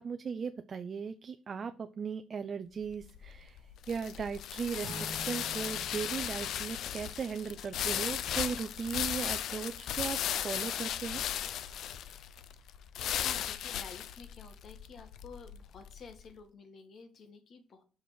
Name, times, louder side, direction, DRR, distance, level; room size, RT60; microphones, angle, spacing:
voice 1, 0.0-3.6 3.9-11.2, right 6 dB, 45° right, 9 dB, 0.5 m, -37 dB
sound 1, 2.8-16.1, left 10 dB, 80° left, 0.4 m, -36 dB
sound 2, 4.8-7.6, right 1 dB, 90° right, 1.5 m, -48 dB
voice 2, 12.6-12.9 13.2-17.8, left 5 dB, 60° left, 8 dB, 1.4 m, -52 dB
5.2 x 4.9 x 6.2 m, 0.39 s
cardioid pair, 90°, 0 cm